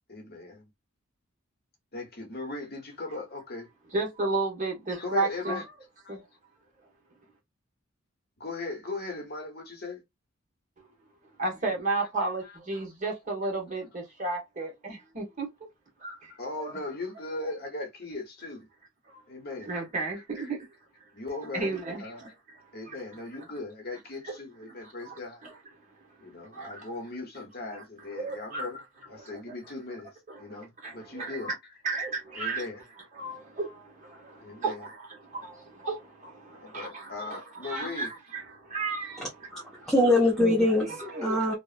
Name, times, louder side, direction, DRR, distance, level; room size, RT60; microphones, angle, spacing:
voice 1, 0.1-0.7 1.9-3.7 5.0-5.6 6.0-6.2 8.4-10.0 12.4-12.8 16.3-18.7 19.3-19.7 20.1-20.5 21.1-22.2 22.7-25.4 26.2-28.8 29.1-31.5 32.3-32.8 34.4-34.8 36.5-38.1, left 3 dB, 50° left, 1.1 m, -38 dB
voice 2, 3.9-5.6 6.1-6.2 11.4-15.5 16.0-16.3 16.6-16.8 19.1-19.2 19.7-20.7 21.5-22.3 22.9-23.0 24.8-25.5 26.5-26.8 27.7-27.8 28.1-28.7 29.2-29.4 30.3-31.5 31.8-32.7 33.1-39.3 39.8-39.9 40.4-40.5 40.9-41.5, right 3 dB, 40° right, 1.2 m, -33 dB
voice 3, 39.2-41.5, left 1 dB, ahead, 0.7 m, -24 dB
2.9 x 2.4 x 2.4 m
head